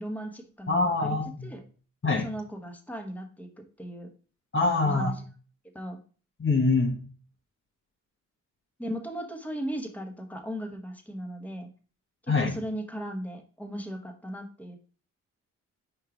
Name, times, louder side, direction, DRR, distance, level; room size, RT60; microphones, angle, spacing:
voice 1, 0.0-1.6 2.2-3.5 3.8-4.1 4.8-5.1 5.7-6.0 8.8-11.7 12.2-14.8, equal, 5° left, 4 dB, 1.3 m, -37 dB
voice 2, 0.7-1.5 2.0-2.3 4.5-5.1 6.4-7.0 12.3-12.5, left 3 dB, 40° left, 1 dB, 1.3 m, -24 dB
4.7 x 4.6 x 5.0 m, 0.39 s
cardioid pair, 70°, 31 cm